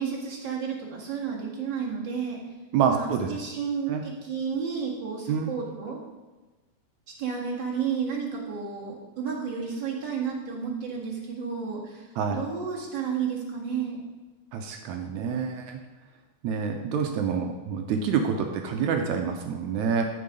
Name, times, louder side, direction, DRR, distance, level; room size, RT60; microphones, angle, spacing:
voice 1, 0.0-2.4 2.9-6.0 7.2-12.0 12.3-14.0, right 6 dB, 40° right, -4 dB, 2.2 m, -32 dB
voice 2, 2.7-3.3 3.9-4.0 5.3-5.5 12.2-12.4 14.5-15.8 16.4-20.0, right 6 dB, 75° right, 3 dB, 2.0 m, -27 dB
13.5 x 4.8 x 5.1 m, 1.2 s
omnidirectional pair, 3.6 m